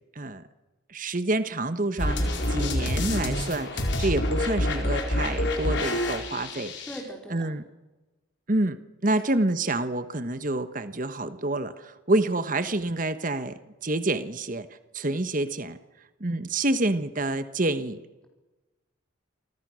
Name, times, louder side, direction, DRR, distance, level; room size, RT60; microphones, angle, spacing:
voice 1, 0.9-6.9 7.3-7.6 8.5-14.7 14.9-15.8 16.2-18.0, right 2 dB, 40° right, 11 dB, 1.2 m, -28 dB
sound 1, 2.0-7.0, left 1 dB, 60° left, 4.6 m, -27 dB
voice 2, 6.9-7.5 9.1-9.2, equal, 5° left, 1 dB, 4.0 m, -40 dB
28.5 x 25.0 x 6.4 m, 1.1 s
head